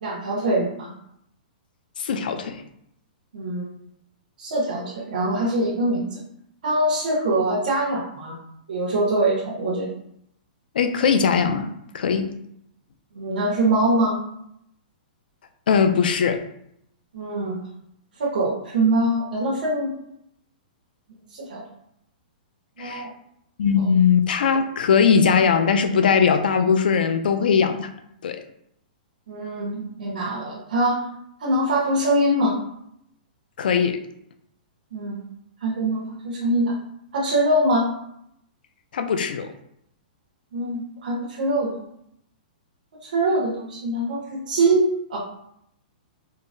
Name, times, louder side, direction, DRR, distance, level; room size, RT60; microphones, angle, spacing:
voice 1, 0.0-0.9 3.3-3.6 4.4-6.2 6.6-8.3 8.7-9.9 13.1-14.2 17.1-17.5 18.2-19.9 21.4-21.6 22.8-23.1 23.8-23.9 29.3-31.0 31.4-32.5 34.9-35.2 35.6-36.7 37.1-37.9 40.5-41.7 43.0-45.2, right 1 dB, 80° right, -6 dB, 0.9 m, -23 dB
voice 2, 2.0-2.6 10.8-12.3 15.7-16.4 22.8-23.1 23.6-27.9 28.2-28.4 33.6-34.0 38.9-39.5, left 6 dB, 80° left, 8 dB, 0.4 m, -20 dB
3.8 x 2.0 x 2.6 m, 0.74 s
hypercardioid pair, 165°, 5 cm